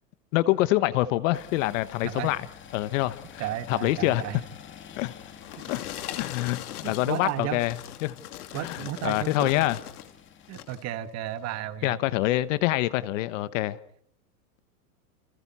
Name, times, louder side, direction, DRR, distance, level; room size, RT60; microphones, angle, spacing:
voice 1, 0.3-2.5 2.7-4.2 5.0-5.1 5.7-5.8 6.2-7.7 8.0-8.2 8.6-9.8 11.8-13.8, left 17 dB, 55° left, 1.2 m, -26 dB
sound 1, 1.3-10.5, left 8 dB, 25° left, 2.2 m, -49 dB
voice 2, 2.0-2.3 3.4-4.4 5.6-5.8 6.8-7.6 8.5-9.5 10.5-12.0, right 12 dB, 35° right, 1.5 m, -33 dB
sound 2, 5.0-10.1 10.5-10.9 11.5-11.6, left 11 dB, 75° left, 2.8 m, -40 dB
29.5 x 27.5 x 4.2 m
hypercardioid pair, 130°, 46 cm